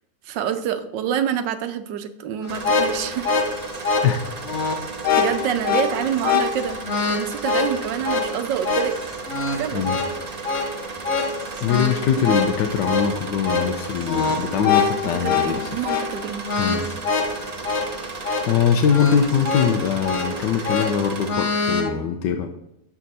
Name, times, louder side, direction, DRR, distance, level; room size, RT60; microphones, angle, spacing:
voice 1, 0.2-3.3 4.7-4.8 5.1-6.8 7.1-9.0 9.6-9.9 15.2-16.4, right 9 dB, 75° right, 9 dB, 1.3 m, -27 dB
sound 1, 2.4-21.9, left 4 dB, 50° left, 0.8 m, -25 dB
sound 2, 2.5-21.3, right 4 dB, 40° right, 0.6 m, -35 dB
voice 2, 11.6-15.8 16.6-16.9 18.5-22.5, left 7 dB, 75° left, 4 dB, 1.2 m, -22 dB
7.0 x 5.9 x 4.1 m, 0.83 s
omnidirectional pair, 2.0 m